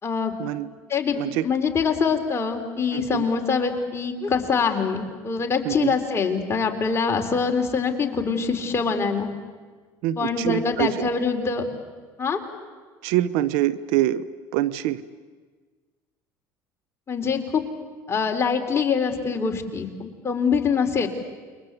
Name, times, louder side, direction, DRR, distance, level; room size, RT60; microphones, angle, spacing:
voice 1, 0.0-0.3 0.9-1.2 1.4-9.3 10.2-11.6 12.2-12.4 17.1-17.7 18.1-21.1, left 5 dB, 30° left, 3 dB, 3.8 m, -24 dB
voice 2, 1.1-1.4 2.9-3.2 5.6-5.9 10.0-11.1 13.0-14.2 14.5-15.0, right 13 dB, 80° right, 17 dB, 0.9 m, -25 dB
29.0 x 23.5 x 8.3 m, 1.5 s
supercardioid pair, 95°, 9 cm